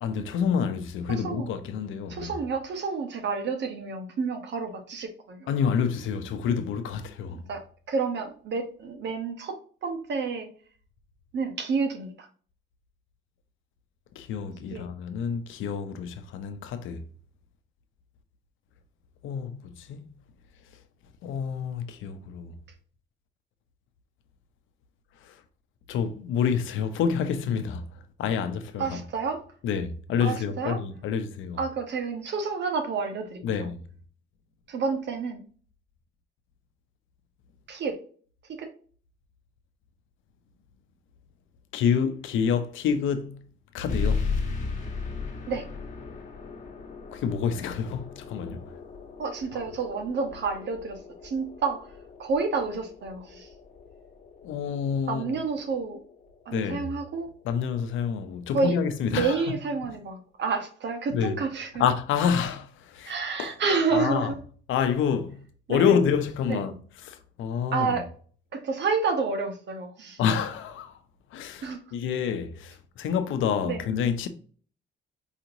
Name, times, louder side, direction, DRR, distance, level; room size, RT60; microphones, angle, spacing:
voice 1, 0.0-2.3 5.5-7.4 14.1-17.0 19.2-20.0 21.2-22.5 25.2-25.4 25.9-27.8 28.2-29.0 29.6-31.6 33.4-33.8 41.7-43.4 43.7-44.3 47.1-48.7 54.4-55.4 56.5-56.9 57.4-59.4 61.1-61.4 61.8-63.1 63.4-63.5 63.9-64.3 64.7-65.4 65.7-66.7 67.0-68.0 70.2-71.0 71.3-74.3, left 7 dB, 85° left, 0.7 m, -28 dB
voice 2, 1.1-1.5 2.1-5.5 7.3-10.5 11.3-12.3 14.7-14.8 28.8-29.4 30.2-30.8 31.6-33.7 34.7-35.4 37.7-38.0 38.5-38.7 45.5-45.7 49.2-51.9 52.2-53.5 55.1-56.0 56.4-57.3 58.5-58.7 59.1-61.8 63.0-64.4 65.7-65.9 66.5-66.7 67.7-68.1 68.5-70.2 71.6-71.8 73.6-73.8, right 4 dB, 65° right, 1.1 m, -29 dB
sound 1, 43.9-59.0, left 4 dB, 40° left, 1.4 m, -37 dB
4.9 x 2.9 x 2.6 m
cardioid pair, 90°, 20 cm